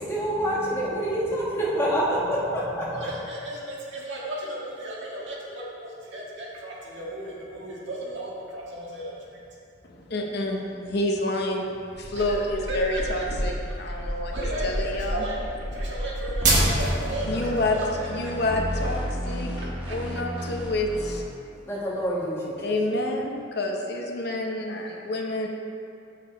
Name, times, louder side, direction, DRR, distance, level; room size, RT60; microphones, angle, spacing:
voice 1, 0.0-3.0 21.7-22.8, equal, 10° left, -6 dB, 1.2 m, -27 dB
voice 2, 2.9-9.4 9.8-9.9 12.0-12.4 12.7-13.5 14.1-15.4 15.7-18.3 19.6-20.0, right 1 dB, 60° right, -5 dB, 1.7 m, -35 dB
voice 3, 9.8-13.5 13.8-14.4 14.6-15.2 17.3-17.8 18.1-19.5 19.9-21.2 22.6-25.5, left 1 dB, 50° left, 1 dB, 0.7 m, -28 dB
sound 1, 12.0-17.1, right 1 dB, 40° right, 1.3 m, -28 dB
sound 2, 16.4-21.2, equal, 5° right, 1.0 m, -32 dB
7.2 x 6.6 x 4.4 m, 2.6 s
head